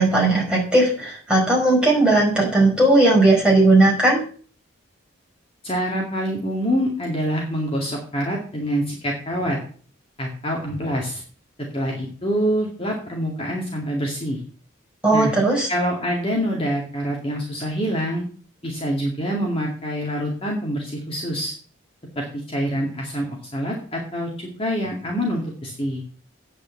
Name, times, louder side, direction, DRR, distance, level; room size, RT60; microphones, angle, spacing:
voice 1, 0.0-4.2 15.0-15.7, right 2 dB, 5° right, -4 dB, 5.0 m, -17 dB
voice 2, 5.6-9.6 10.2-11.2 11.7-14.4 15.1-15.3 15.7-18.2 18.6-21.5 22.2-26.0, equal, 25° left, -2 dB, 2.3 m, -26 dB
8.9 x 6.8 x 8.4 m, 0.43 s
head